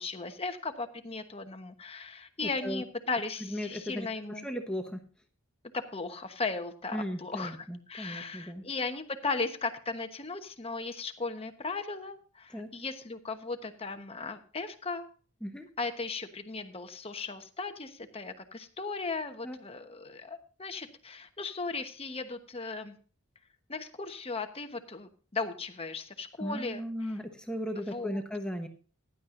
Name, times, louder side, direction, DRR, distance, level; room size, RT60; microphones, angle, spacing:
voice 1, 0.0-4.5 5.7-15.1 15.8-23.0 23.7-27.2 27.9-28.2, left 3 dB, 25° left, 7 dB, 1.1 m, -37 dB
voice 2, 3.4-5.0 6.9-8.6 12.5-12.7 15.4-15.7 19.4-19.6 26.4-28.7, equal, 5° left, 4 dB, 1.0 m, -36 dB
15.5 x 11.0 x 2.6 m, 0.39 s
head